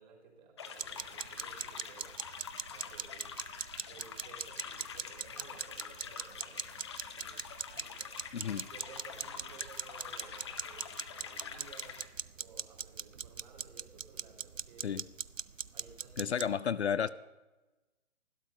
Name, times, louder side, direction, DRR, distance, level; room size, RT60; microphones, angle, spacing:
voice 1, 0.0-2.2 2.7-3.3 3.8-6.8 7.2-8.1 8.7-12.0 12.4-15.0 15.7-17.1, right 5 dB, 35° right, 0 dB, 3.8 m, -56 dB
sound 1, 0.6-12.1, left 6 dB, 25° left, 0.7 m, -46 dB
sound 2, 0.8-16.6, right 7 dB, 90° right, 0.5 m, -41 dB
voice 2, 8.3-8.6 14.8-15.0 16.2-17.1, left 7 dB, 60° left, 16 dB, 0.5 m, -32 dB
13.5 x 12.5 x 5.5 m, 1.1 s
figure-of-eight pair, 135°, 37 cm